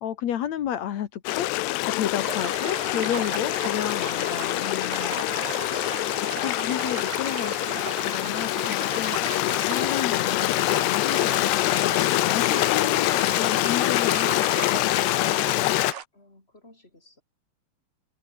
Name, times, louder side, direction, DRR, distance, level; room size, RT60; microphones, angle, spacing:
voice 1, 0.0-5.7 6.2-7.8 8.1-14.9, left 10 dB, 60° left, 1.9 m, -32 dB
Stream, 1.3-15.9, left 20 dB, 90° left, 2.8 m, -25 dB
sound 1, 2.2-16.1, right 9 dB, 75° right, 4.5 m, -37 dB
voice 2, 16.1-17.2, left 2 dB, 15° left, 5.4 m, -55 dB
omnidirectional pair, 4.7 m